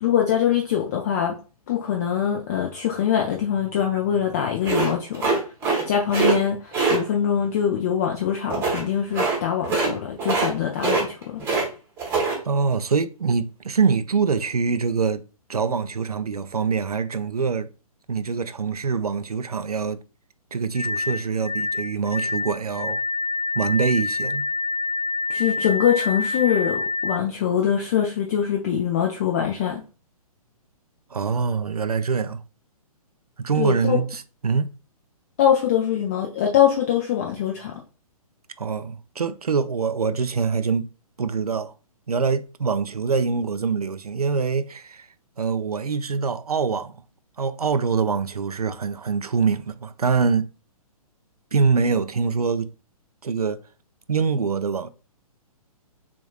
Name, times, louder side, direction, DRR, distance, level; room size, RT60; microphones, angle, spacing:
voice 1, 0.0-1.4 1.7-5.3 5.9-11.4 25.3-29.8 33.5-34.0 35.4-37.7, left 9 dB, 25° left, 0.5 m, -23 dB
sound 1, 4.6-5.8 6.1-6.3 6.7-7.0 8.5-8.8 9.1-9.4 9.6-9.9 10.2-10.5 10.8-11.7 12.0-12.3, right 4 dB, 10° right, 1.2 m, -22 dB
voice 2, 12.5-15.2 15.5-17.7 18.1-20.0 20.5-23.0 23.6-24.4 31.1-32.4 33.4-34.7 38.6-40.9 41.2-41.7 42.1-45.1 45.4-47.0 47.4-50.5 51.5-52.7 53.2-53.6 54.1-54.9, right 5 dB, 75° right, 0.4 m, -24 dB
sound 2, 20.7-27.2, left 3 dB, 85° left, 0.6 m, -27 dB
7.0 x 2.5 x 2.3 m
figure-of-eight pair, 125°, 19 cm